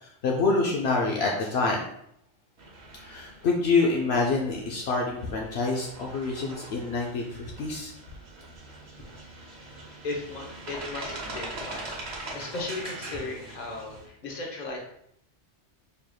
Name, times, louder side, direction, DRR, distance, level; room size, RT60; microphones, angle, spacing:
voice 1, 0.0-1.8 3.0-7.9, left 3 dB, 70° left, -1 dB, 0.8 m, -26 dB
sound 1, 2.6-14.1, right 2 dB, 65° right, 1.1 m, -42 dB
voice 2, 9.0-14.8, left 2 dB, 45° left, -1 dB, 0.9 m, -37 dB
4.5 x 3.4 x 2.2 m, 0.72 s
omnidirectional pair, 1.1 m